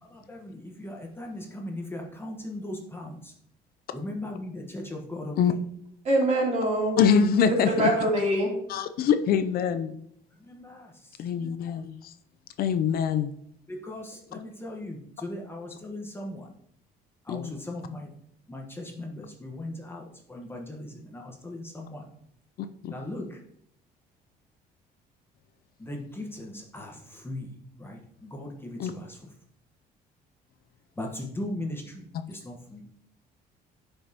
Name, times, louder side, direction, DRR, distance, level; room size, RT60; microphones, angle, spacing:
voice 1, 0.0-3.3 3.9-5.5 10.3-11.2 13.7-16.5 17.2-18.1 18.5-22.1 22.9-23.4 25.8-27.5 27.8-29.3 31.0-32.8, left 1 dB, 15° left, 0 dB, 1.2 m, -38 dB
voice 2, 6.0-7.0 7.5-8.5, right 1 dB, 40° right, -2 dB, 3.0 m, -24 dB
voice 3, 7.0-7.9 8.7-10.0 11.2-11.9 12.6-13.3 17.3-17.5 22.8-22.9 28.8-28.9, left 7 dB, 65° left, 10 dB, 0.5 m, -24 dB
10.0 x 5.4 x 2.9 m, 0.69 s
cardioid pair, 110°, 17 cm